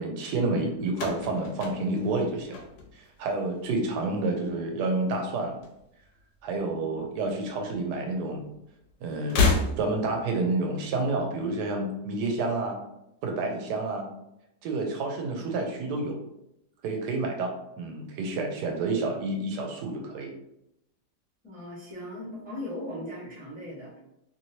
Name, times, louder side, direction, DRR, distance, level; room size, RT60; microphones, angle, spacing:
voice 1, 0.0-2.6 2.9-5.6 6.4-8.5 9.0-9.4 9.8-12.8 13.2-14.1 14.6-16.2 16.8-20.3, right 2 dB, 80° right, 2 dB, 1.2 m, -29 dB
sound 1, 0.9-3.2 3.5-4.1 5.2-6.2 6.5-6.6 7.7-7.8 9.2-10.2, left 4 dB, 85° left, 1.3 m, -29 dB
voice 2, 21.4-24.0, left 1 dB, 5° right, -6 dB, 1.2 m, -38 dB
3.0 x 2.9 x 2.7 m, 0.82 s
omnidirectional pair, 1.8 m